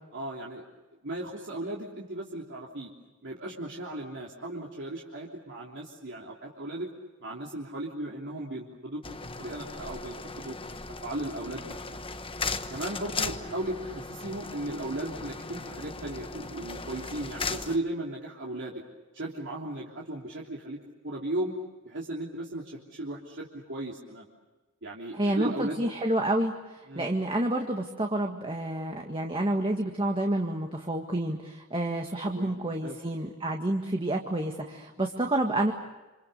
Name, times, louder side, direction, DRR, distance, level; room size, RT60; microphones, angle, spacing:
voice 1, 0.1-0.6 1.0-2.9 3.2-6.9 7.2-9.0 9.4-10.6 11.0-12.0 12.7-18.8 19.1-20.8 21.0-21.5 21.8-24.2 24.8-25.8 26.9-27.1 32.2-33.0, right 1 dB, 60° right, -3 dB, 3.3 m, -36 dB
sound 1, 9.0-17.8, left 4 dB, 25° left, 1.2 m, -37 dB
voice 2, 25.1-35.7, right 1 dB, 25° right, 2 dB, 1.8 m, -29 dB
28.0 x 27.5 x 6.8 m, 1.2 s
head